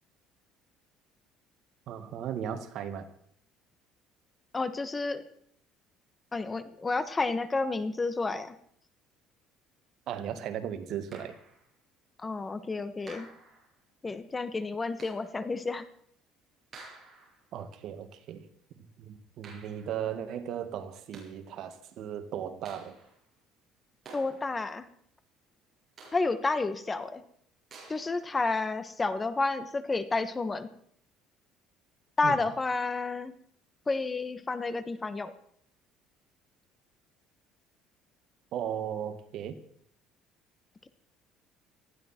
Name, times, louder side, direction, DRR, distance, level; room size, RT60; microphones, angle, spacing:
voice 1, 1.9-3.1 10.1-11.3 17.5-18.4 18.8-23.0 32.2-32.4 38.5-39.6, right 9 dB, 60° right, 8 dB, 2.0 m, -36 dB
voice 2, 4.5-5.2 6.3-8.5 12.2-13.3 14.0-15.9 24.1-24.9 26.1-27.2 27.9-30.7 32.2-33.3 33.9-35.3, left 3 dB, 20° left, 12 dB, 1.3 m, -30 dB
Claps-Vic's, 11.1-11.7 13.1-13.8 15.0-15.4 16.7-17.5 19.4-20.1 20.9-21.5 22.7-23.3 24.0-24.8 26.0-26.6 27.7-28.3, right 3 dB, 30° right, 7.5 m, -51 dB
19.5 x 15.0 x 4.5 m, 0.65 s
cardioid pair, 130°, 0 cm